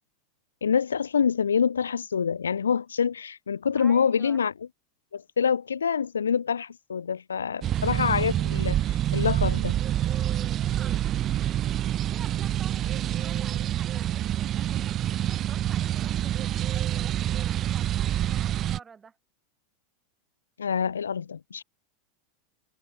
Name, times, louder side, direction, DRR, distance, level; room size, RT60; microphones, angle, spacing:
voice 1, 0.6-4.5 5.1-9.8 20.6-21.6, left 7 dB, 90° left, 0.3 m, -26 dB
voice 2, 3.7-4.4 7.5-7.9 10.3-11.6 12.1-16.3 16.7-19.2, right 6 dB, 25° right, 3.5 m, -50 dB
sound 1, 7.6-18.8, right 12 dB, 40° right, 0.3 m, -27 dB
hypercardioid pair, 95°, 0 cm